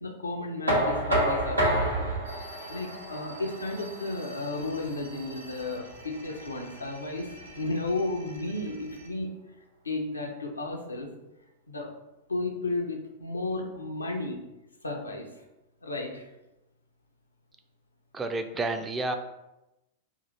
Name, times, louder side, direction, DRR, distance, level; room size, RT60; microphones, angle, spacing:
voice 1, 0.0-1.7 2.0-2.2 2.7-9.3 9.8-11.1 11.7-11.9 12.3-14.4 14.8-15.3 15.8-16.3, left 2 dB, 85° left, 2 dB, 0.5 m, -33 dB
Knock, 0.7-6.5, right 1 dB, 90° right, 0.9 m, -30 dB
sound 1, 2.2-9.1, right 1 dB, 70° right, 0.5 m, -49 dB
voice 2, 18.1-19.2, right 2 dB, 15° right, 6 dB, 0.4 m, -30 dB
2.9 x 2.4 x 4.0 m, 0.95 s
figure-of-eight pair, 95°, 0 cm